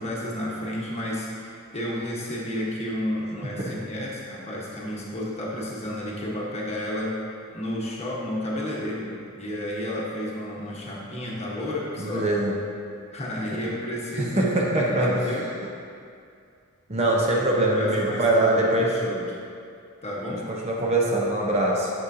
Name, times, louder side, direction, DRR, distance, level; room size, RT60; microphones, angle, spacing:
voice 1, 0.0-7.2 7.5-12.4 13.1-15.5 17.3-19.4 20.0-20.5, equal, 30° left, -4 dB, 1.1 m, -31 dB
voice 2, 12.0-12.5 14.2-15.2 16.9-19.0 20.5-21.9, right 1 dB, 30° right, -3 dB, 0.7 m, -23 dB
8.9 x 6.4 x 2.7 m, 2.3 s
head